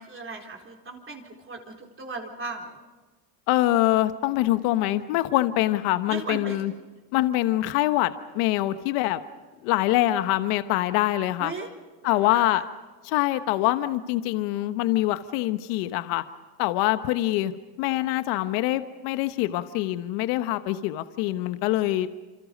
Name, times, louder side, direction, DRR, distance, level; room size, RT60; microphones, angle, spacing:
voice 1, 0.0-2.7 6.1-6.6 11.4-11.7 12.0-12.7, right 3 dB, 25° right, 2 dB, 4.1 m, -37 dB
voice 2, 3.5-6.7 7.1-9.2 9.6-11.5 12.0-12.6 13.0-16.2 16.6-17.5 17.8-22.1, left 15 dB, 70° left, 11 dB, 1.2 m, -24 dB
28.0 x 26.0 x 5.4 m, 1.3 s
supercardioid pair, 105°, 49 cm